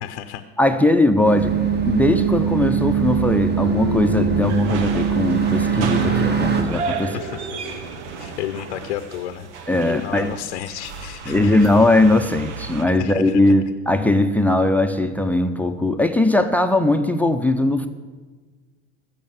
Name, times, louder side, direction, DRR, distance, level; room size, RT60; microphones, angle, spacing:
voice 1, 0.0-0.4 7.1-7.5 8.2-9.5 9.9-11.7 12.9-13.5, left 11 dB, 85° left, 10 dB, 0.7 m, -32 dB
voice 2, 0.6-1.5 1.9-7.2 9.7-10.3 11.3-17.9, left 2 dB, 5° left, 10 dB, 0.6 m, -19 dB
sound 1, 1.2-6.6, right 7 dB, 30° right, 1.6 m, -21 dB
sound 2, 3.6-11.0, left 2 dB, 60° right, 4.3 m, -35 dB
sound 3, 4.4-12.8, right 5 dB, 85° right, 1.2 m, -34 dB
15.0 x 6.8 x 7.4 m, 1.4 s
hypercardioid pair, 90°, 34 cm